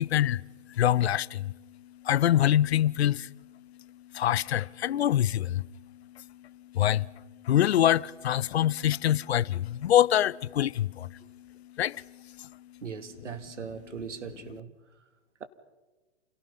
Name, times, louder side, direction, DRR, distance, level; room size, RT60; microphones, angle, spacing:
voice 1, 0.0-12.8, left 11 dB, 60° left, 0.7 m, -26 dB
voice 2, 12.8-14.7, right 6 dB, 80° right, 2.5 m, -39 dB
30.0 x 28.0 x 5.6 m
hypercardioid pair, 130°, 36 cm